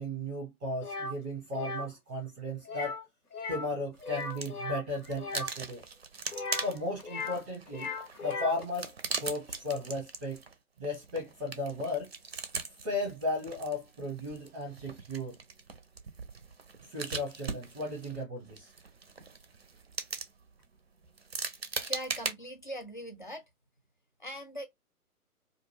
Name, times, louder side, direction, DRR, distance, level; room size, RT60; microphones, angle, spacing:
voice 1, 0.0-2.9 3.5-5.8 6.6-7.9 8.2-10.4 10.8-12.1 12.8-15.4 16.8-18.7, left 1 dB, 10° right, 0.8 m, -35 dB
sound 1, 0.8-1.1 1.5-1.9 2.6-3.0 3.3-3.7 4.0-5.5 6.3-7.4 7.7-8.6, left 3 dB, 75° left, 0.9 m, -38 dB
sound 2, 4.0-4.6 4.9-22.3, right 4 dB, 45° right, 0.5 m, -41 dB
voice 2, 21.9-23.4 24.2-24.7, equal, 35° left, 0.4 m, -40 dB
2.4 x 2.2 x 3.2 m
figure-of-eight pair, 140°, 45 cm